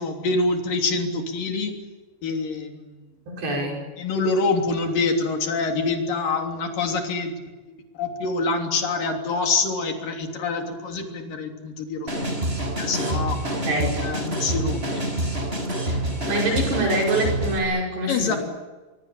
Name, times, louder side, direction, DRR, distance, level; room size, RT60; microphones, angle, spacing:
voice 1, 0.0-1.8 2.2-3.0 4.0-7.3 7.9-12.4 12.8-13.4 13.8-15.4 16.5-16.8 18.1-18.4, left 3 dB, 50° left, 3 dB, 4.7 m, -26 dB
voice 2, 3.3-3.8 13.4-14.0 16.3-18.4, right 1 dB, 70° right, 0 dB, 7.8 m, -25 dB
sound 1, 12.1-17.6, right 1 dB, 15° right, 5.0 m, -27 dB
26.0 x 24.0 x 8.6 m, 1.2 s
omnidirectional pair, 5.1 m